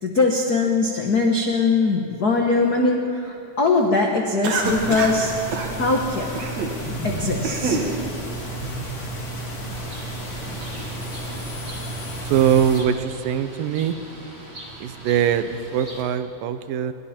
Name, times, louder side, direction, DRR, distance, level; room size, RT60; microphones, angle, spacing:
voice 1, 0.0-5.3 5.8-6.3 7.0-7.8, left 3 dB, 80° left, 1 dB, 0.8 m, -21 dB
Cough, 4.4-5.2 5.5-5.7 6.3-6.8 7.2-7.9, right 4 dB, 55° right, 2.9 m, -26 dB
sound 1, 4.6-12.8, right 1 dB, 35° left, 3.7 m, -32 dB
Bird, 9.8-16.0, right 1 dB, 20° right, 2.3 m, -41 dB
voice 2, 12.3-14.0 14.8-16.9, right 9 dB, 80° right, 11 dB, 2.5 m, -22 dB
29.5 x 22.5 x 4.4 m, 2.6 s
omnidirectional pair, 4.0 m